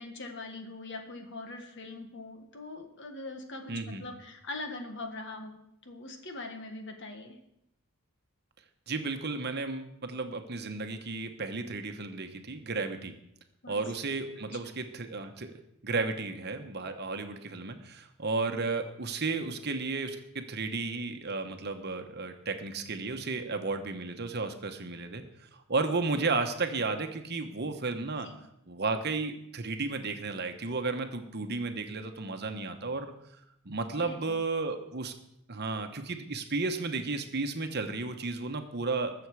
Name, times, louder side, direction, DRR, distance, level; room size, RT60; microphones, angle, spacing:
voice 1, 0.0-7.3 13.6-13.8 28.2-28.4 33.9-34.3, left 2 dB, 55° left, 5 dB, 1.7 m, -42 dB
voice 2, 3.7-4.1 8.9-13.1 13.7-15.5 15.8-28.3 28.7-33.1 33.6-35.1 35.5-39.1, right 3 dB, 50° right, 6 dB, 1.1 m, -33 dB
20.5 x 7.1 x 4.8 m, 0.79 s
head